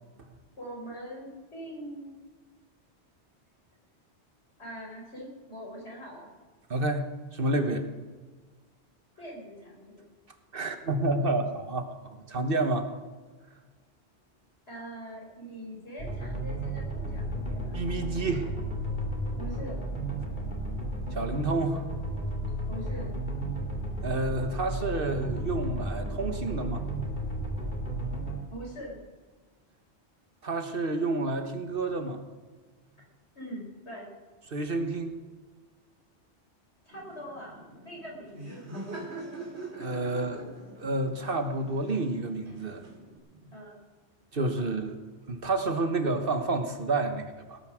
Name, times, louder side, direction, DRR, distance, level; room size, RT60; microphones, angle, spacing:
voice 1, 0.6-2.2 4.6-6.3 9.2-10.1 14.7-17.8 19.4-19.8 22.7-23.1 28.5-29.0 33.4-34.1 36.8-37.6 37.8-38.7 43.5-43.8, equal, 75° left, -2 dB, 5.3 m, -42 dB
voice 2, 6.7-7.1 7.3-7.9 10.5-11.8 12.1-12.8 17.7-18.5 21.1-21.8 24.0-26.8 30.4-32.2 34.5-35.1 39.8-40.5 40.8-42.8 44.3-45.0 45.3-47.6, right 2 dB, 55° right, 6 dB, 1.4 m, -29 dB
sound 1, 16.0-28.4, right 1 dB, 45° left, 2.8 m, -33 dB
Laughter, 36.9-43.2, right 2 dB, 75° right, 3.1 m, -43 dB
18.5 x 9.4 x 6.3 m, 1.4 s
omnidirectional pair, 1.1 m